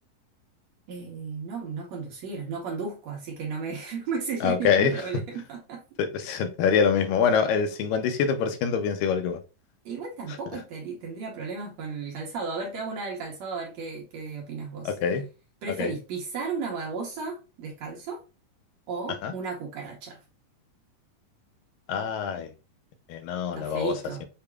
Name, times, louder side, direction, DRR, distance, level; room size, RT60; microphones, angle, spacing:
voice 1, 0.9-5.8 9.9-15.0 15.6-18.2 18.9-20.2 23.5-24.3, right 5 dB, 65° right, 2.0 m, -34 dB
voice 2, 4.4-4.9 6.0-9.4 14.9-15.2 15.8-15.9 19.2-19.3 21.9-22.5 23.1-24.0, left 6 dB, 85° left, 2.3 m, -25 dB
6.7 x 2.9 x 2.3 m
omnidirectional pair, 3.9 m